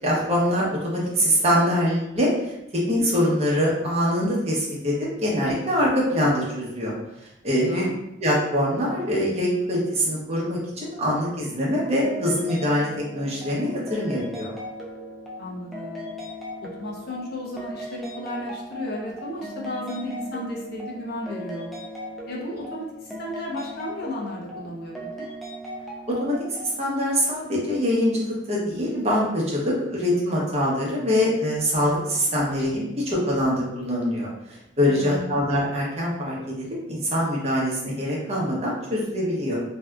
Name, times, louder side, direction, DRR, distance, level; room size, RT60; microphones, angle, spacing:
voice 1, 0.0-2.3 2.7-4.9 5.2-6.9 7.4-7.8 8.2-12.9 13.1-14.5 26.2-34.3 34.8-39.6, equal, 35° right, -4 dB, 0.7 m, -24 dB
voice 2, 7.5-7.9 15.4-16.1 16.8-21.7 22.3-25.3 34.9-35.4, left 1 dB, 60° left, -4 dB, 0.7 m, -34 dB
sound 1, 12.0-26.8, equal, ahead, 0.4 m, -38 dB
2.7 x 2.3 x 2.3 m, 0.86 s
head